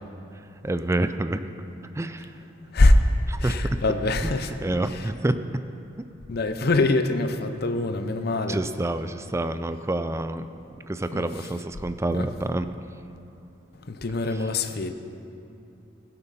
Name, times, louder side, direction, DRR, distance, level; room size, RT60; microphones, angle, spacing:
voice 1, 0.6-1.4 2.0-2.2 3.3-3.6 4.2-4.3 4.6-5.3 8.5-10.5 10.9-12.7, right 2 dB, 15° right, 10 dB, 0.4 m, -27 dB
voice 2, 3.4-4.5 4.8-5.1 6.3-8.6 11.1-11.5 12.1-12.3 13.9-14.9, left 2 dB, 55° left, 8 dB, 0.7 m, -23 dB
16.5 x 11.0 x 4.2 m, 2.7 s
head